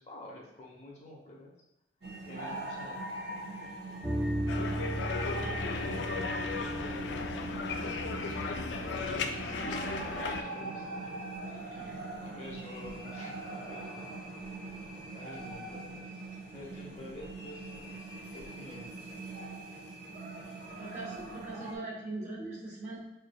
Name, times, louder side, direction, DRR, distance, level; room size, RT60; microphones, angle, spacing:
voice 1, 0.0-1.5 2.2-3.0 4.6-11.9 12.2-14.5 15.1-16.2 16.5-18.0 18.3-18.9, left 1 dB, 40° left, -2 dB, 0.8 m, -49 dB
sound 1, 2.0-21.7, right 2 dB, 60° right, 0.8 m, -42 dB
sound 2, 4.0-9.6, right 1 dB, 10° right, 0.3 m, -37 dB
sound 3, 4.5-10.4, left 5 dB, 75° left, 0.3 m, -36 dB
voice 2, 11.5-12.0 20.8-23.0, right 2 dB, 40° right, -5 dB, 1.2 m, -41 dB
4.9 x 3.2 x 2.2 m, 0.96 s
head